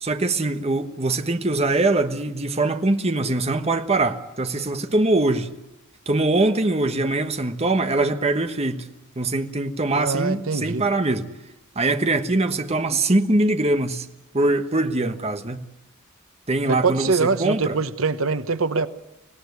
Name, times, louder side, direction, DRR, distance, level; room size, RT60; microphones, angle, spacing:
voice 1, 0.0-5.5 6.1-8.9 9.2-11.3 11.7-14.1 14.3-15.6 16.5-17.8, right 2 dB, 30° right, 1.3 m, -22 dB
voice 2, 9.9-10.8 16.7-18.9, right 4 dB, 85° right, 1.0 m, -23 dB
25.0 x 17.5 x 9.5 m
head